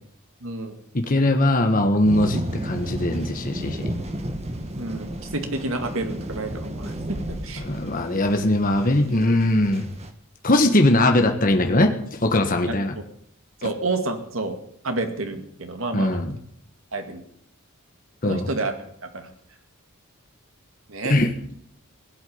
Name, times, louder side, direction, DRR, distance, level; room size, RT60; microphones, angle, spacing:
voice 1, 0.4-0.8 4.8-7.7 13.6-14.6 14.8-16.3 16.9-17.2 18.2-18.8 19.1-19.3 20.9-21.2, right 2 dB, 70° right, 6 dB, 2.2 m, -29 dB
voice 2, 0.9-3.9 7.6-9.9 10.4-12.9 15.9-16.4 18.2-18.5 21.1-21.3, left 1 dB, 40° left, 5 dB, 1.4 m, -20 dB
sound 1, 2.0-10.1, right 1 dB, 30° right, 1.6 m, -33 dB
18.0 x 8.2 x 9.6 m, 0.67 s
head